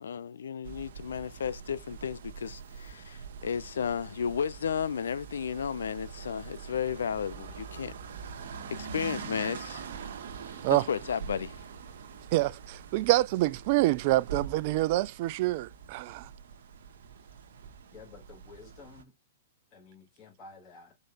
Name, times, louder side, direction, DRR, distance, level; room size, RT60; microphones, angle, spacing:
voice 1, 0.0-7.9 8.5-9.9 10.5-10.6 10.9-11.6, left 7 dB, 80° left, 0.5 m, -33 dB
sound 1, 0.6-19.0, right 6 dB, 65° right, 1.1 m, -44 dB
voice 2, 12.3-16.3, right 17 dB, 50° right, 0.4 m, -26 dB
voice 3, 17.9-19.2 19.7-21.0, left 4 dB, 35° left, 2.5 m, -51 dB
4.8 x 4.1 x 2.5 m
hypercardioid pair, 120°, 0 cm